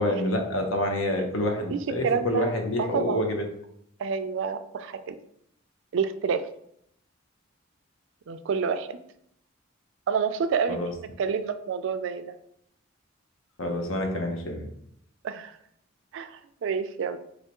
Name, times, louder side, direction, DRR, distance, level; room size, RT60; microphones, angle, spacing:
voice 1, 0.0-3.4 10.7-10.9 13.6-14.7, left 1 dB, 75° left, 4 dB, 0.8 m, -27 dB
voice 2, 2.0-2.5 2.8-3.2 4.0-5.2 5.9-6.4 8.3-9.0 10.1-12.3 15.2-15.5 16.1-17.2, right 6 dB, 65° right, 10 dB, 0.3 m, -28 dB
3.9 x 3.3 x 2.9 m, 0.73 s
head